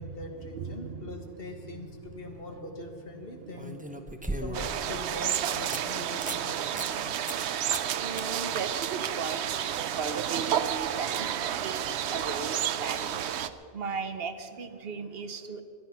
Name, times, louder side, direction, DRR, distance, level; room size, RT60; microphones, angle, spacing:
voice 1, 0.0-3.8 4.4-7.4, left 2 dB, 60° left, 4 dB, 1.8 m, -42 dB
voice 2, 0.5-2.0 3.4-4.4 8.0-9.5 9.8-11.3 11.6-13.2 13.7-15.6, right 5 dB, 65° right, 9 dB, 1.2 m, -37 dB
sound 1, 1.8-2.2 3.6-4.9 5.3-5.4 5.7-5.8 6.2-6.4 6.8-6.9 7.3-7.5 7.7-7.9 8.2-8.3 11.4-11.5, right 1 dB, 10° right, 0.8 m, -36 dB
sound 2, 4.5-13.5, right 10 dB, 85° right, 0.9 m, -31 dB
22.0 x 10.0 x 5.9 m, 2.5 s
omnidirectional pair, 1.1 m